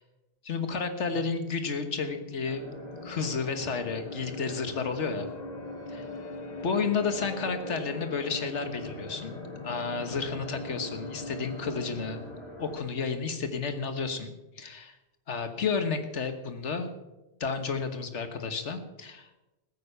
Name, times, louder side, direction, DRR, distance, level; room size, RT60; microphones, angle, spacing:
voice 1, 0.4-2.7 3.0-5.3 6.6-12.3 12.6-14.9 15.3-16.9 17.4-19.3, left 5 dB, 80° left, 8 dB, 1.6 m, -31 dB
sound 1, 1.1-12.5, left 3 dB, 45° left, 0.7 m, -42 dB
sound 2, 2.4-12.8, left 1 dB, 25° right, 4.5 m, -44 dB
15.0 x 9.4 x 6.7 m, 1.0 s
omnidirectional pair, 1.2 m